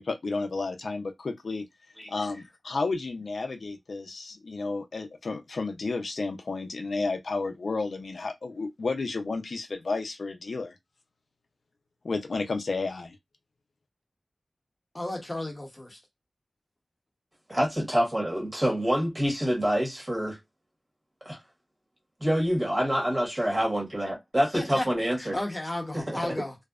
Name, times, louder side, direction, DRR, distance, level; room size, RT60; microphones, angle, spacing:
voice 1, 0.0-1.6 2.1-10.7 12.0-13.2, left 3 dB, 70° left, 0.4 m, -32 dB
voice 2, 14.9-16.0 24.5-24.9 25.2-26.5, left 1 dB, 25° left, 0.9 m, -33 dB
voice 3, 17.5-20.4 21.2-21.4 22.2-25.4 25.9-26.3, equal, 25° right, 1.3 m, -26 dB
2.6 x 2.1 x 2.3 m
wide cardioid pair, 80°, 0 cm